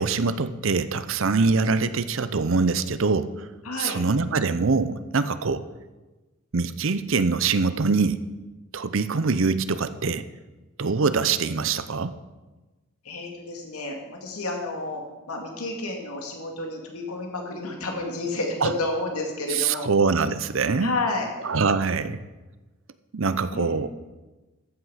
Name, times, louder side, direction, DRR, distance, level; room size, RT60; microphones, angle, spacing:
voice 1, 0.0-3.3 3.8-5.6 6.5-8.2 8.7-10.2 10.8-12.1 18.6-18.7 19.5-20.9 21.4-22.2 23.1-23.9, right 4 dB, 60° right, 13 dB, 0.6 m, -23 dB
voice 2, 3.6-4.0 13.0-19.9 20.8-21.3 23.5-23.8, left 2 dB, 90° left, 1 dB, 2.2 m, -30 dB
14.0 x 8.2 x 5.7 m, 1.2 s
head